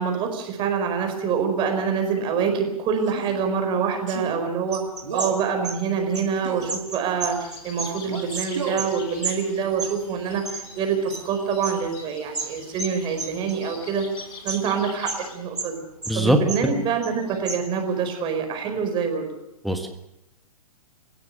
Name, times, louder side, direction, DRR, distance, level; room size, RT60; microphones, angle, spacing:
voice 1, 0.0-14.1 14.4-15.8 16.1-19.3, right 6 dB, 25° right, 5 dB, 4.8 m, -26 dB
Male speech man speaking, 3.0-3.4 4.1-4.4 5.0-5.4 6.4-6.8 8.1-8.9, right 6 dB, 55° right, 4.0 m, -32 dB
sound 1, 4.7-9.0 9.2-11.3 11.6-13.8 14.2-15.3 15.5-16.7 17.0-17.9, right 4 dB, 80° right, 3.4 m, -33 dB
sound 2, 7.3-15.3, left 4 dB, 35° left, 7.2 m, -44 dB
voice 2, 16.1-16.4 19.6-20.0, right 1 dB, ahead, 5 dB, 1.5 m, -22 dB
27.5 x 16.5 x 6.7 m, 0.87 s
figure-of-eight pair, 115°, 20 cm